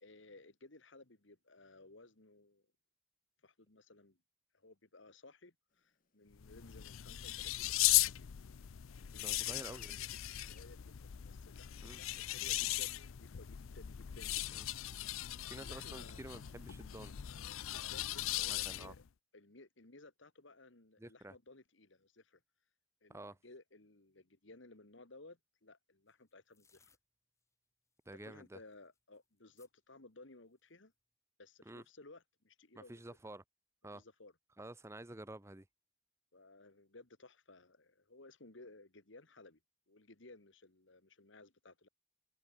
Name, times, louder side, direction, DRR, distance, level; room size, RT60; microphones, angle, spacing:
voice 1, 0.0-2.6 3.4-4.2 4.5-8.3 9.1-10.1 10.4-14.6 15.6-16.2 17.7-19.0 19.3-22.4 23.0-26.9 28.1-30.9 31.4-33.0 33.9-34.3 36.3-39.6 39.9-41.9, left 2 dB, 65° left, 2.0 m, -58 dB
Bird vocalization bird call bird song, 5.8-8.7 9.0-13.7, left 8 dB, 40° left, 2.3 m, -62 dB
sound 1, 6.3-19.1, left 16 dB, 80° left, 0.5 m, -38 dB
voice 2, 9.2-10.0 11.8-12.0 14.5-14.7 15.5-17.1 18.5-18.9 21.0-21.4 23.1-23.4 28.1-28.6 31.7-31.8 32.7-33.4 33.8-34.0 34.6-35.6, right 1 dB, 15° right, 0.8 m, -50 dB
sound 2, 26.1-27.0 27.4-27.5 27.9-29.7 30.5-30.9, left 5 dB, 15° left, 6.5 m, -72 dB
head